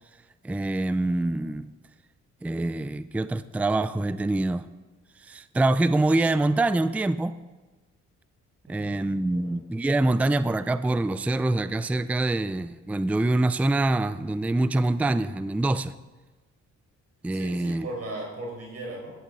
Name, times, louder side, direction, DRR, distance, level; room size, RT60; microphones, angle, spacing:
voice 1, 0.4-1.7 2.4-4.7 5.2-7.4 8.7-15.9 17.2-17.9, right 2 dB, 5° right, 14 dB, 0.4 m, -25 dB
voice 2, 8.7-9.5 17.3-19.1, right 2 dB, 55° right, -1 dB, 5.0 m, -38 dB
16.5 x 12.0 x 3.8 m, 1.2 s
cardioid pair, 90°, 30 cm